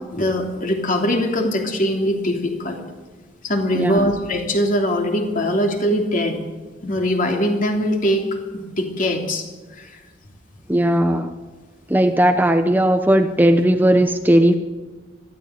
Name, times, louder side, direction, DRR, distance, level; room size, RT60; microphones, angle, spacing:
voice 1, 0.1-2.8 3.4-6.4 6.8-8.2 8.5-9.4 9.7-10.0, equal, 45° left, 2 dB, 3.1 m, -21 dB
voice 2, 3.7-4.1 10.7-11.3 11.9-14.6, right 1 dB, 10° right, 7 dB, 0.7 m, -17 dB
20.5 x 14.0 x 9.1 m, 1.3 s
head